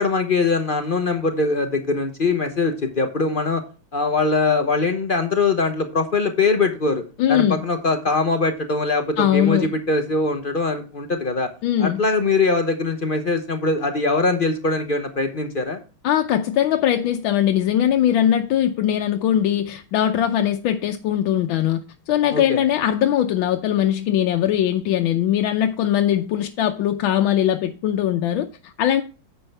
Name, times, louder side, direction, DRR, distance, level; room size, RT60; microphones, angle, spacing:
voice 1, 0.0-3.6 3.9-11.5 11.8-15.8 22.3-22.6, left 3 dB, 45° left, 0.6 m, -22 dB
voice 2, 7.2-7.6 9.2-9.7 11.6-12.0 16.0-21.8 22.1-29.0, left 11 dB, 75° left, 1.4 m, -20 dB
9.7 x 7.8 x 3.3 m
omnidirectional pair, 2.4 m